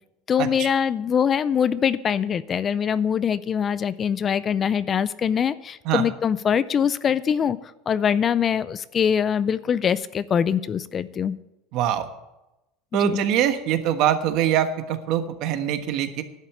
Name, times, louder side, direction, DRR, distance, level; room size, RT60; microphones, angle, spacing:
voice 1, 0.3-7.6 7.9-11.4 12.9-13.2, left 7 dB, 25° left, 17 dB, 0.4 m, -23 dB
voice 2, 11.7-12.1 12.9-16.2, right 10 dB, 55° right, 8 dB, 1.3 m, -23 dB
11.0 x 8.1 x 8.6 m, 0.95 s
supercardioid pair, 140°, 0 cm